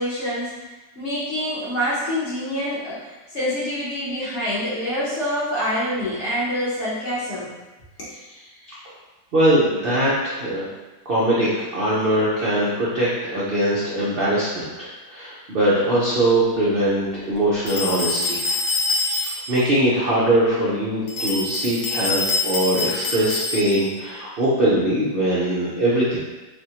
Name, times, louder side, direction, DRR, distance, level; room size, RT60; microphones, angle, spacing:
voice 1, 0.0-7.5, equal, 50° left, -8 dB, 0.9 m, -26 dB
voice 2, 9.3-10.7 11.1-18.6 18.9-26.2, right 1 dB, 85° right, -8 dB, 0.5 m, -21 dB
sound 1, 17.7-19.6 21.1-24.0, left 3 dB, 75° left, 1.2 m, -25 dB
3.4 x 2.4 x 2.8 m, 1.1 s
omnidirectional pair, 1.8 m